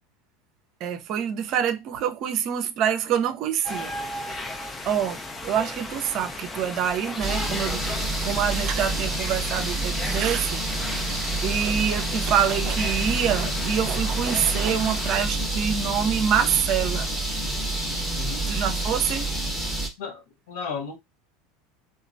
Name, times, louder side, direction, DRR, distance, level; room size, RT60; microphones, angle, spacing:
voice 1, 0.8-3.9 4.8-5.2 5.4-10.8 11.4-17.1 18.5-19.3, right 8 dB, 45° right, 0.5 m, -26 dB
sound 1, 3.6-15.3, left 2 dB, 20° left, 0.6 m, -36 dB
sound 2, 7.2-19.9, right 2 dB, 5° left, 0.9 m, -28 dB
sound 3, 10.9-19.5, left 1 dB, 90° left, 1.1 m, -44 dB
voice 2, 20.0-21.0, left 6 dB, 60° left, 0.9 m, -34 dB
2.9 x 2.3 x 2.5 m
figure-of-eight pair, 80°, 0 cm